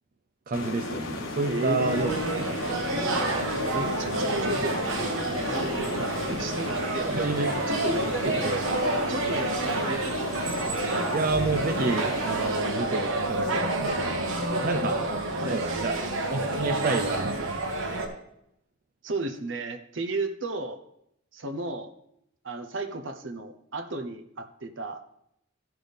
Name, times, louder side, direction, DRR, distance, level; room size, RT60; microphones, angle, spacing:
sound 1, 0.5-12.5, left 2 dB, 75° left, 1.3 m, -35 dB
voice 1, 0.5-2.1 7.0-7.8 8.4-8.6 11.1-14.3 14.6-15.0 15.5-16.0 16.3-17.6, right 3 dB, 45° right, 4 dB, 0.5 m, -29 dB
voice 2, 1.5-2.5 3.7-7.1 7.7-10.1 10.8-11.0 14.8-15.1 15.4-15.6 19.0-20.8 21.3-21.9 22.4-25.0, right 2 dB, 65° right, 8 dB, 0.9 m, -34 dB
sound 2, 1.9-18.1, right 2 dB, 80° right, 1.4 m, -29 dB
15.5 x 6.1 x 3.4 m, 0.78 s
head